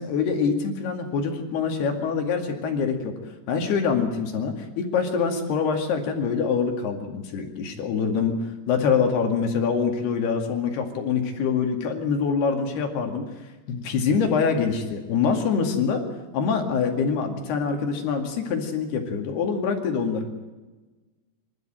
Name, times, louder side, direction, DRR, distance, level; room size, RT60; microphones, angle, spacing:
voice 1, 0.0-3.1 3.5-13.2 13.7-16.0 16.3-20.3, left 5 dB, 60° left, 4 dB, 3.9 m, -25 dB
25.5 x 13.0 x 9.1 m, 1.2 s
omnidirectional pair, 5.8 m